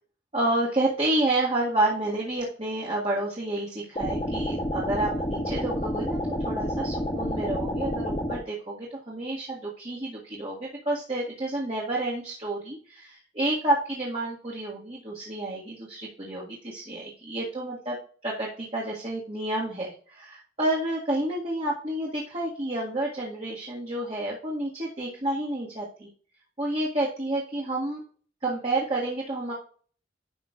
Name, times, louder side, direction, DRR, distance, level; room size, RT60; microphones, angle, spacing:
voice 1, 0.3-18.0 18.2-26.1 26.6-28.0 28.4-29.5, right 1 dB, 35° right, -5 dB, 1.8 m, -29 dB
sound 1, 4.0-8.4, equal, 35° left, 1.7 m, -29 dB
11.0 x 6.0 x 2.5 m, 0.43 s
head